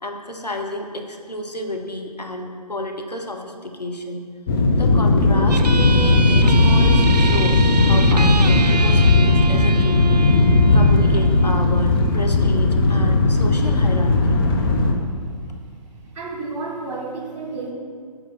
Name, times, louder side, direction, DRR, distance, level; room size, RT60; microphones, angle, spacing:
voice 1, 0.0-4.2 4.8-10.1 10.6-14.5, left 1 dB, 90° left, 3 dB, 1.1 m, -31 dB
sound 1, 4.5-14.9, left 2 dB, 35° left, 0.9 m, -16 dB
sound 2, 5.5-12.5, right 4 dB, 90° right, 0.4 m, -28 dB
voice 2, 14.5-15.1 16.0-17.7, right 3 dB, 50° right, 1 dB, 1.9 m, -32 dB
8.2 x 5.1 x 5.8 m, 2.1 s
figure-of-eight pair, 130°, 20 cm